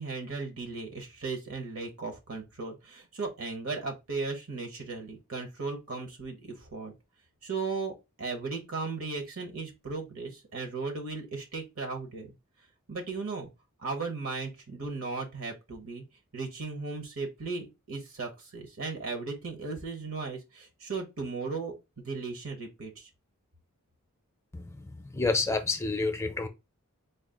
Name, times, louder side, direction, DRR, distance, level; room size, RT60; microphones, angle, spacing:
voice 1, 0.0-6.9 7.4-12.3 12.9-13.5 13.8-16.0 16.3-23.1, right 4 dB, 70° right, 1.1 m, -36 dB
voice 2, 25.1-26.5, left 3 dB, 10° left, 0.5 m, -28 dB
4.0 x 2.4 x 3.7 m
head